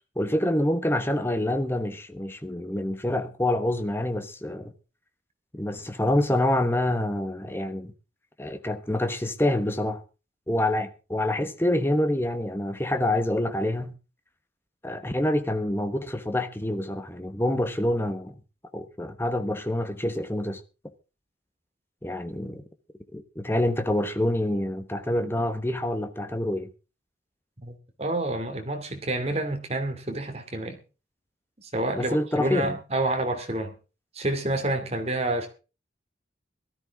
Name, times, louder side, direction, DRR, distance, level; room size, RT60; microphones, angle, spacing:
voice 1, 0.1-4.7 5.5-7.9 8.4-10.0 10.5-13.9 14.8-18.3 18.7-20.6 22.0-22.6 23.1-26.7 32.0-32.8, left 1 dB, 10° left, 1.2 m, -26 dB
voice 2, 27.6-30.8 31.6-33.7 34.1-35.5, right 2 dB, 35° right, 2.5 m, -28 dB
18.0 x 13.0 x 3.6 m
head